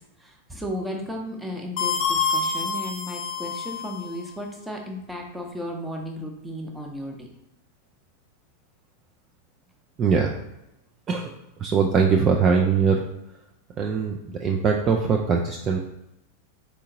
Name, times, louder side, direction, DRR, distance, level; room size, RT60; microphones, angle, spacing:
voice 1, 0.2-7.3, equal, 5° right, 1 dB, 0.7 m, -34 dB
sound 1, 1.8-4.1, left 5 dB, 40° left, 0.7 m, -27 dB
voice 2, 10.0-10.3 11.1-11.3 11.6-13.0 13.8-15.8, right 5 dB, 30° right, 1 dB, 0.4 m, -21 dB
4.4 x 3.6 x 2.7 m, 0.88 s
figure-of-eight pair, 90°, 0 cm